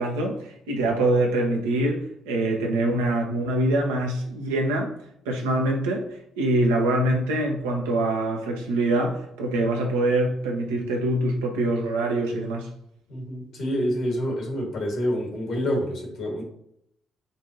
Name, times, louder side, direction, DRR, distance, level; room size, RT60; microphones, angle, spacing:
voice 1, 0.0-4.9 5.3-12.7, right 1 dB, 75° right, 0.7 m, -24 dB
voice 2, 13.1-16.4, equal, 60° left, 1.5 m, -27 dB
5.3 x 2.6 x 2.7 m
figure-of-eight pair, 40°, 0 cm